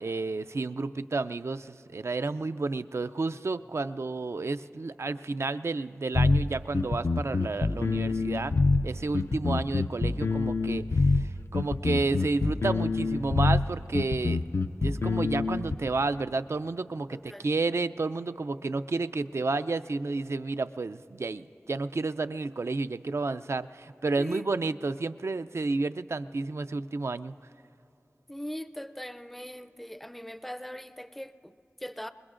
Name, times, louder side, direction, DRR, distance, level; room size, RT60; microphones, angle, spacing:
voice 1, 0.0-14.4 14.8-27.3, right 3 dB, 65° right, 12 dB, 0.4 m, -31 dB
sound 1, 6.1-15.7, left 3 dB, 65° left, 0.4 m, -26 dB
voice 2, 17.1-17.5 24.2-24.4 28.3-32.1, equal, 5° left, 12 dB, 0.4 m, -40 dB
27.0 x 21.5 x 2.5 m, 2.7 s
wide cardioid pair, 50°, 5 cm